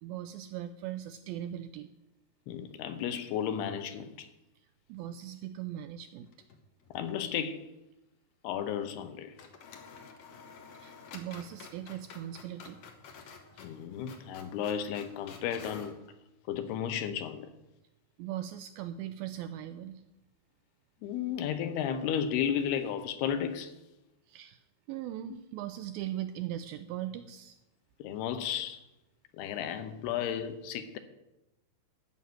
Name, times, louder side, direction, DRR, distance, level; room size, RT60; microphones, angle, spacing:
voice 1, 0.0-1.9 4.9-6.3 10.8-12.8 13.5-13.7 18.2-20.0 24.3-24.6 24.9-27.6, right 12 dB, 85° right, 2.1 m, -39 dB
voice 2, 2.5-4.3 6.9-7.7 8.4-9.3 13.6-16.0 16.5-17.5 21.0-23.8 28.0-28.8 29.3-31.0, left 8 dB, 80° left, 2.9 m, -33 dB
sound 1, 6.3-7.1 7.4-7.5 8.9-9.1 9.4-16.0, left 5 dB, 60° left, 1.9 m, -51 dB
13.0 x 6.1 x 9.2 m
omnidirectional pair, 4.7 m